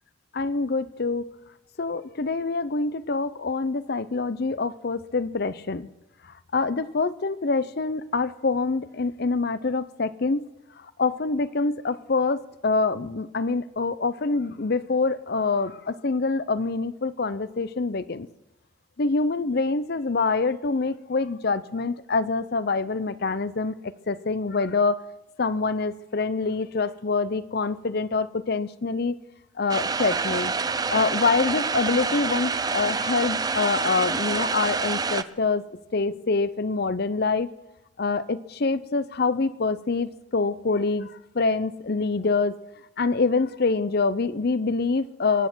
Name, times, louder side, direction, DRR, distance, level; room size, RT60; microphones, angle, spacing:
voice 1, 0.3-1.3 1.8-5.9 6.5-10.5 11.0-18.3 19.0-23.7 24.1-25.0 25.4-29.1 29.6-35.6 35.9-37.5 38.0-42.6 43.0-45.5, left 4 dB, 50° left, 15 dB, 0.6 m, -25 dB
sound 1, 29.7-35.2, right 4 dB, 20° right, 0.4 m, -27 dB
23.5 x 9.5 x 6.1 m, 0.95 s
head